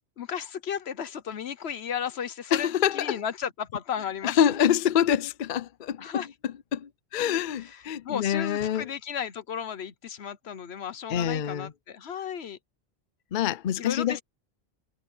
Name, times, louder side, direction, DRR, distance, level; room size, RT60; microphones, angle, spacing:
voice 1, 0.2-4.4 6.0-6.3 7.5-12.6 13.8-14.2, left 8 dB, 80° left, 1.2 m, -34 dB
voice 2, 2.5-3.2 4.2-8.9 11.1-11.7 13.3-14.2, left 9 dB, 55° left, 0.7 m, -26 dB
omnidirectional pair, 1.1 m